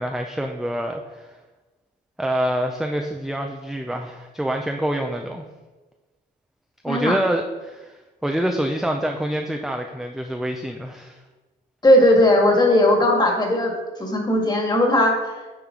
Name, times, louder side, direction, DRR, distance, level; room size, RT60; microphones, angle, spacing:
voice 1, 0.0-1.3 2.2-5.4 6.8-11.2, right 1 dB, ahead, 3 dB, 0.5 m, -26 dB
voice 2, 6.9-7.2 11.8-13.7 14.0-15.1, left 1 dB, 20° left, 1 dB, 1.8 m, -17 dB
9.0 x 4.5 x 3.8 m, 1.2 s
cardioid pair, 90°, 20 cm